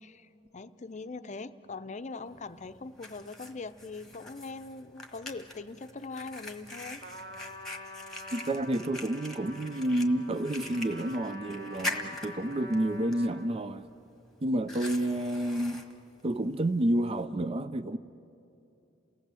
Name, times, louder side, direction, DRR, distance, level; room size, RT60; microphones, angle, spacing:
voice 1, 0.0-7.0, left 3 dB, 40° left, 0.6 m, -42 dB
Fire, 2.3-17.3, left 1 dB, 5° left, 1.4 m, -44 dB
Trumpet, 7.0-13.6, left 1 dB, 70° right, 2.7 m, -46 dB
voice 2, 8.3-13.9 14.4-15.9 16.2-18.0, right 1 dB, 30° right, 0.5 m, -29 dB
29.0 x 17.5 x 7.7 m
head